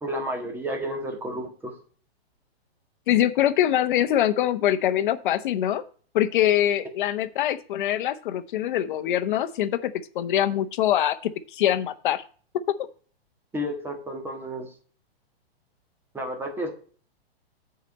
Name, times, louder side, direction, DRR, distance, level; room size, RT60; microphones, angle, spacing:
voice 1, 0.0-1.7 13.5-14.7 16.1-16.7, equal, 5° right, 2 dB, 1.6 m, -31 dB
voice 2, 3.1-5.8 6.1-12.2 12.7-12.9, left 11 dB, 50° left, 12 dB, 0.9 m, -24 dB
8.2 x 5.0 x 6.7 m, 0.42 s
hypercardioid pair, 155°, 31 cm